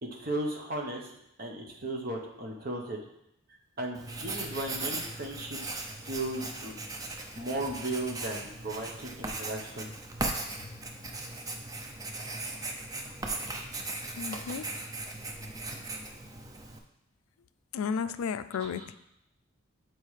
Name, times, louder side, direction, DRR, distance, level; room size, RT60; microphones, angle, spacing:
voice 1, 0.0-1.1 1.4-3.0 3.8-5.6 6.0-6.7 7.4-9.9 18.5-18.9, right 1 dB, 45° right, 0 dB, 0.9 m, -36 dB
Writing, 4.0-16.8, right 2 dB, 15° right, 0.4 m, -38 dB
voice 2, 14.2-14.6 17.7-18.9, left 6 dB, 85° left, 14 dB, 0.3 m, -33 dB
7.3 x 4.5 x 3.2 m, 0.81 s
head